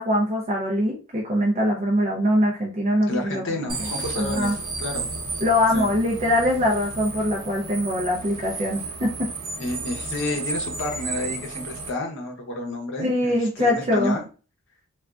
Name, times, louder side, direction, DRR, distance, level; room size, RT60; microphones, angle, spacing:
voice 1, 0.0-3.7 4.2-4.6 5.4-9.3 13.0-14.2, left 1 dB, 30° right, -2 dB, 0.5 m, -23 dB
voice 2, 3.1-4.5 4.8-5.1 5.7-5.9 9.6-14.2, left 2 dB, 55° left, 2 dB, 0.8 m, -30 dB
sound 1, 3.7-11.9, right 3 dB, 80° right, 0.8 m, -33 dB
3.4 x 2.3 x 2.4 m, 0.35 s
head